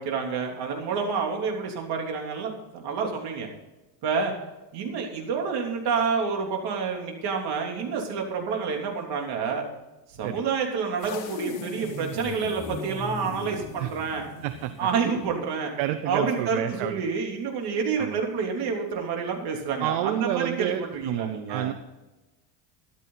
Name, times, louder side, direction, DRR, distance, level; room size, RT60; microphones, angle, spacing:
voice 1, 0.0-3.5 4.0-4.3 4.7-9.6 10.1-14.2 14.8-15.7 16.1-21.7, right 5 dB, 55° right, 1 dB, 3.4 m, -28 dB
sound 1, 11.0-15.3, left 2 dB, 55° left, 2.8 m, -38 dB
voice 2, 14.4-14.9 15.8-17.0 18.0-18.2 19.8-21.7, right 13 dB, 75° right, 10 dB, 1.0 m, -29 dB
13.5 x 12.0 x 4.0 m, 1.0 s
cardioid pair, 135°, 48 cm